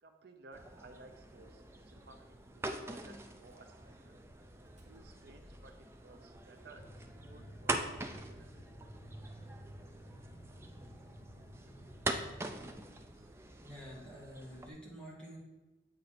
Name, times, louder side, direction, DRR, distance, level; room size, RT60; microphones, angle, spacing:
voice 1, 0.0-4.2 4.8-5.7 6.0-8.5, right 3 dB, 65° right, 5 dB, 0.6 m, -58 dB
sound 1, 0.5-14.7, right 2 dB, 15° right, 0.4 m, -44 dB
Motor vehicle (road), 3.5-14.6, equal, 40° right, 1.6 m, -64 dB
sound 2, 6.7-13.2 13.9-14.6, equal, 60° left, 1.4 m, -53 dB
voice 2, 13.6-15.4, equal, 5° left, -6 dB, 1.6 m, -49 dB
8.0 x 4.0 x 4.3 m, 1.1 s
head